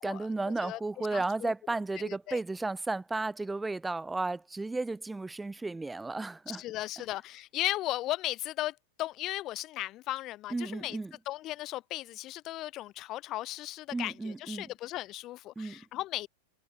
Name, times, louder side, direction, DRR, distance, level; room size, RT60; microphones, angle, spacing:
voice 1, 0.0-6.6 10.5-11.1 13.9-14.7 15.6-15.8, right 3 dB, 10° right, 0.7 m, -33 dB
voice 2, 0.6-1.5 2.0-2.4 6.5-11.0 11.3-16.3, left 16 dB, 35° left, 1.0 m, -36 dB
figure-of-eight pair, 90°, 0 cm